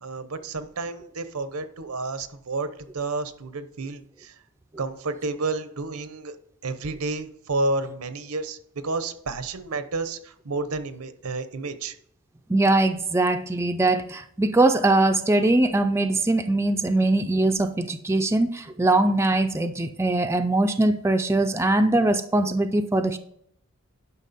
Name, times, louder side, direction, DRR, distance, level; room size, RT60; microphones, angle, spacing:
voice 1, 0.0-2.7 2.9-4.3 4.8-6.3 6.6-8.6 8.8-11.9, right 3 dB, 85° right, 0.9 m, -30 dB
voice 2, 12.5-23.2, right 2 dB, 10° right, 0.4 m, -21 dB
11.0 x 5.8 x 4.1 m
head